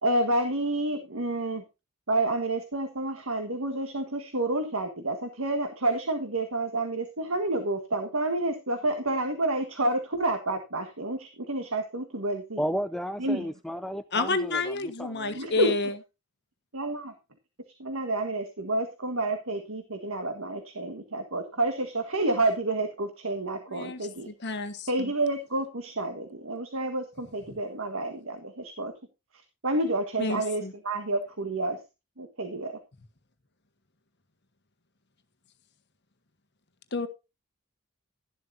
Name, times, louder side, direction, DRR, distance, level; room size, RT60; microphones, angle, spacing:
voice 1, 0.0-1.6 2.1-12.6 13.2-13.5 15.3-15.7 16.7-17.1 17.8-24.3 24.9-28.9 29.6-31.8 32.2-32.8, right 2 dB, 70° right, 6 dB, 1.7 m, -29 dB
voice 2, 12.6-15.4, equal, ahead, 10 dB, 0.4 m, -33 dB
voice 3, 14.1-16.0 23.7-25.1 30.2-30.7 36.9-37.1, left 3 dB, 50° left, 9 dB, 1.4 m, -30 dB
13.0 x 11.5 x 2.7 m, 0.27 s
head